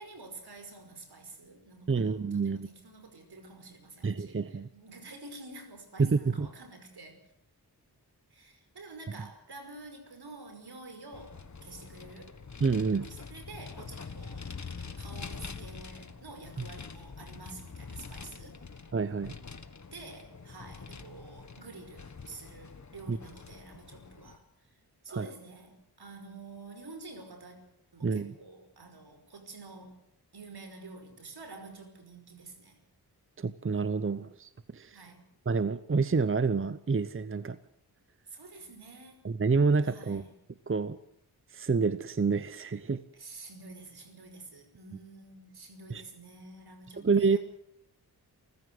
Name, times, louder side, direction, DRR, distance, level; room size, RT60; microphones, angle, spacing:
voice 1, 0.0-7.2 8.3-12.4 13.1-18.6 19.9-30.0 30.3-32.8 34.9-35.2 38.3-39.2 39.8-40.4 43.1-47.4, right 3 dB, 75° right, 7 dB, 5.3 m, -49 dB
voice 2, 1.9-2.7 4.0-4.7 6.0-6.5 12.6-13.1 18.9-19.3 23.1-23.2 25.1-25.3 28.0-28.3 33.4-35.0 35.5-37.6 39.2-40.2 40.7-41.0 41.5-43.0 45.9-46.0 47.0-47.4, right 4 dB, 30° right, 14 dB, 0.8 m, -28 dB
Vehicle, 11.1-24.4, left 5 dB, 45° left, 1.6 m, -45 dB
29.0 x 15.0 x 7.9 m, 0.74 s
wide cardioid pair, 80°, 39 cm